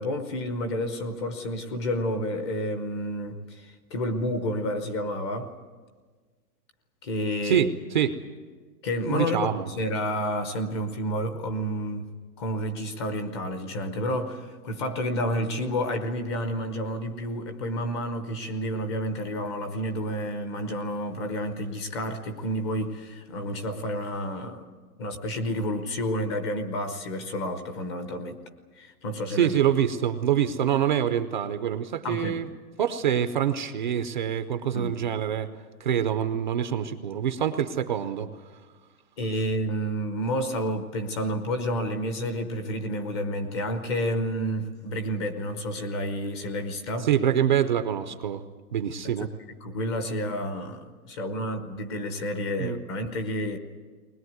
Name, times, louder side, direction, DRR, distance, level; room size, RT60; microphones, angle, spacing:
voice 1, 0.0-5.5 7.0-7.7 8.8-12.1 12.4-24.7 25.0-28.4 28.8-29.5 32.0-32.4 34.7-34.9 39.2-47.1 49.0-49.3 49.6-53.6, equal, 20° left, 8 dB, 0.8 m, -30 dB
voice 2, 7.4-8.2 9.1-9.7 29.3-32.5 32.8-35.5 35.8-38.3 47.0-48.4 48.7-49.3 52.6-52.8, right 9 dB, 30° right, 9 dB, 0.6 m, -25 dB
21.0 x 20.0 x 9.4 m, 1.5 s
hypercardioid pair, 175°, 46 cm